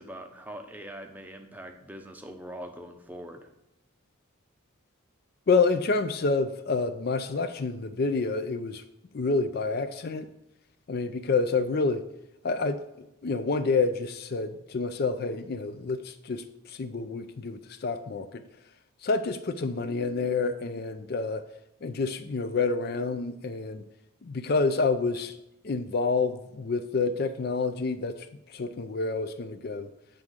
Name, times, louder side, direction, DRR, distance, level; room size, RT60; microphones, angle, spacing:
voice 1, 0.0-3.5, equal, 5° right, 5 dB, 0.6 m, -42 dB
voice 2, 5.5-8.8 9.1-10.3 10.9-12.0 12.4-12.8 13.2-18.4 19.0-21.4 21.8-23.8 24.2-25.4 25.6-29.9, left 4 dB, 45° left, 9 dB, 0.4 m, -28 dB
9.0 x 3.6 x 6.3 m, 0.85 s
head